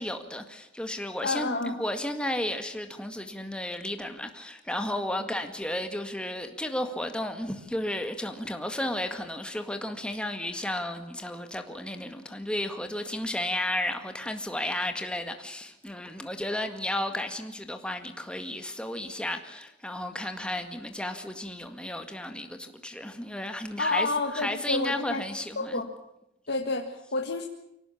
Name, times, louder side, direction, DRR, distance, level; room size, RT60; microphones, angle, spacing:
voice 1, 0.0-24.1 24.3-25.8, left 1 dB, 5° left, 2.0 m, -33 dB
voice 2, 1.2-1.8 23.8-25.2 25.6-25.9 26.5-27.5, left 3 dB, 60° left, 1.8 m, -29 dB
24.5 x 18.0 x 8.6 m
head